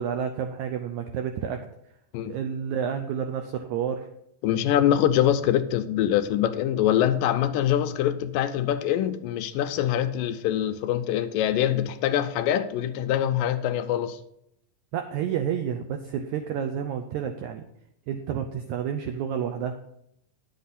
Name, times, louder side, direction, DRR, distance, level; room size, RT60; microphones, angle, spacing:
voice 1, 0.0-1.6 2.3-4.1 14.9-17.7 18.1-19.8, right 8 dB, 85° right, 6 dB, 1.7 m, -30 dB
voice 2, 4.4-14.2, left 11 dB, 80° left, 10 dB, 2.2 m, -24 dB
10.5 x 8.0 x 4.1 m, 0.75 s
omnidirectional pair, 4.1 m